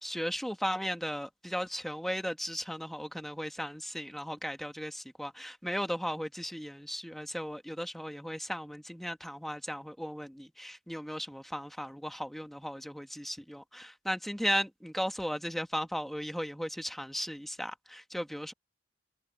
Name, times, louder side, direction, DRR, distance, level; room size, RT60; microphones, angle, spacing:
voice 1, 0.0-18.5, equal, ahead, 1.3 m, -36 dB
head